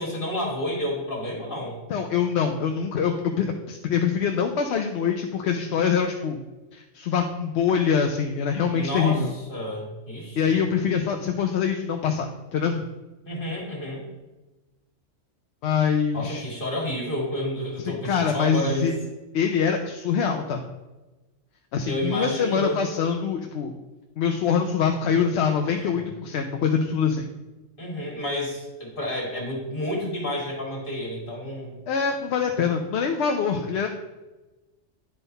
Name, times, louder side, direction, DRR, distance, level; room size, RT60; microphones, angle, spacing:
voice 1, 0.0-1.8 8.6-10.6 13.2-14.0 16.1-18.9 21.8-22.8 25.1-25.3 25.8-26.0 27.8-31.7, left 1 dB, 45° left, -2 dB, 2.1 m, -30 dB
voice 2, 1.9-6.4 6.7-9.3 10.4-12.8 15.6-16.4 17.9-18.9 19.3-20.6 21.7-23.7 24.2-27.3 31.9-33.9, left 6 dB, 65° left, 4 dB, 0.8 m, -24 dB
10.0 x 3.8 x 4.0 m, 1.1 s
omnidirectional pair, 1.3 m